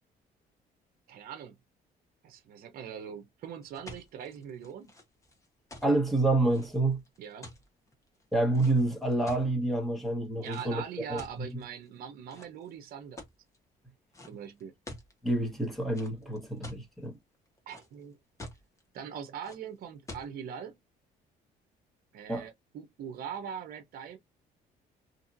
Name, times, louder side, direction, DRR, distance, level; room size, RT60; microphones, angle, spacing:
voice 1, 1.1-1.5 2.2-4.9 7.2-7.5 10.4-13.2 14.3-14.7 17.7-18.2 18.9-20.8 22.1-24.2, right 8 dB, 60° right, 0.7 m, -42 dB
sound 1, 3.6-9.7 10.4-10.7 11.2-11.9 12.3-12.7 13.2-13.6 14.1-14.3 14.6-15.1 15.9-16.9 17.3-18.0 18.4-18.8 19.4-19.6 20.1-20.3, left 1 dB, 20° left, 1.2 m, -47 dB
voice 2, 5.8-7.0 8.3-10.8 11.1-11.6 15.2-17.2 22.3-22.5, right 2 dB, ahead, 1.3 m, -28 dB
2.9 x 2.7 x 2.6 m
cardioid pair, 110°, 17 cm